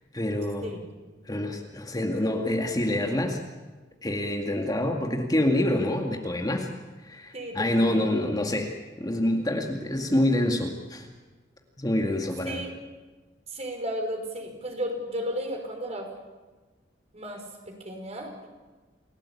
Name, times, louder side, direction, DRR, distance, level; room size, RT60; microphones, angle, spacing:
voice 1, 0.1-0.7 1.3-3.4 4.0-6.7 7.0-11.1 11.8-12.6, left 1 dB, 20° left, 2 dB, 2.1 m, -26 dB
voice 2, 7.3-8.4 12.5-12.7 13.5-16.1 17.1-18.5, equal, 35° right, 3 dB, 5.5 m, -34 dB
28.5 x 17.5 x 8.5 m, 1.3 s
head